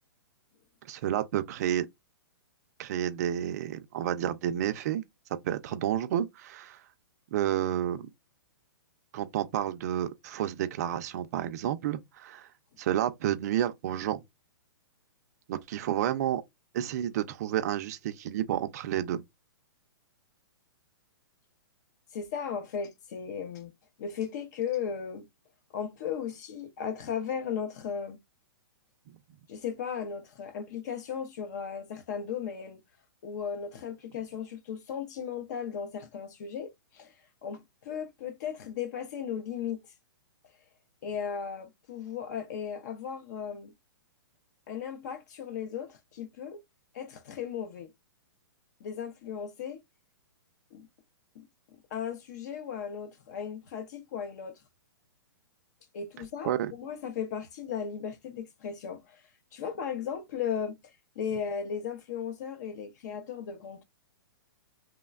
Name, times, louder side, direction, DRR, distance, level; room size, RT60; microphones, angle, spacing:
voice 1, 0.9-1.9 2.8-5.0 5.4-6.8 7.3-8.1 9.1-12.5 12.8-14.2 15.5-16.4 16.7-19.2 56.2-56.7, right 11 dB, 45° right, 0.4 m, -30 dB
voice 2, 22.1-23.7 24.0-25.3 25.7-28.2 29.5-32.8 33.2-37.1 37.4-39.8 41.0-43.7 44.7-46.6 46.9-47.9 48.8-49.8 50.7-50.9 51.3-51.4 51.9-54.6 55.9-59.2 59.5-60.8 61.2-63.8, left 7 dB, 45° left, 0.6 m, -36 dB
3.1 x 2.1 x 2.3 m
hypercardioid pair, 155°, 13 cm